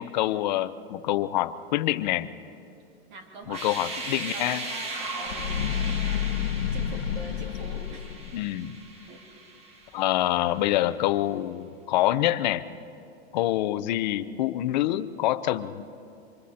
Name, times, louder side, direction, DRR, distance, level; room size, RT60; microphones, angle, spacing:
voice 1, 0.0-2.3 3.5-4.6 8.3-8.7 9.9-12.6 13.3-15.8, left 14 dB, 45° left, 11 dB, 0.7 m, -26 dB
voice 2, 3.1-4.0 4.3-8.1 9.1-9.2 13.4-13.5, right 2 dB, 50° right, 2 dB, 3.0 m, -44 dB
sound 1, 3.4-10.3, right 2 dB, 20° right, 1.4 m, -38 dB
sound 2, 5.2-8.5, left 10 dB, 70° left, 1.2 m, -30 dB
29.0 x 25.5 x 4.3 m, 2.6 s
supercardioid pair, 175°, 32 cm